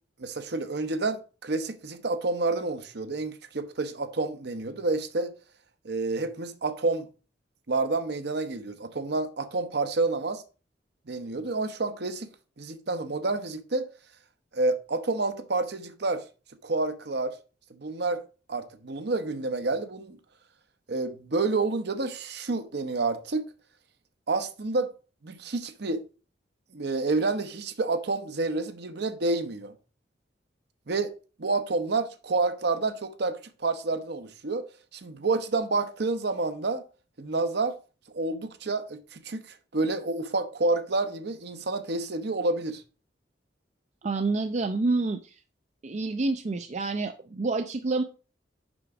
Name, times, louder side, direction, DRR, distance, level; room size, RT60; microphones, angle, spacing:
voice 1, 0.2-5.3 5.8-7.1 7.7-10.4 11.1-12.3 12.6-13.9 14.5-16.2 16.6-17.4 17.7-18.2 18.5-20.2 20.9-23.5 24.3-24.9 25.2-26.0 26.7-29.7 30.9-31.1 31.4-34.7 34.9-36.8 37.2-37.8 38.1-42.8, right 3 dB, 60° right, 0.8 m, -29 dB
voice 2, 44.0-45.3 45.8-48.0, right 3 dB, 40° right, 0.4 m, -28 dB
6.1 x 5.1 x 4.8 m
head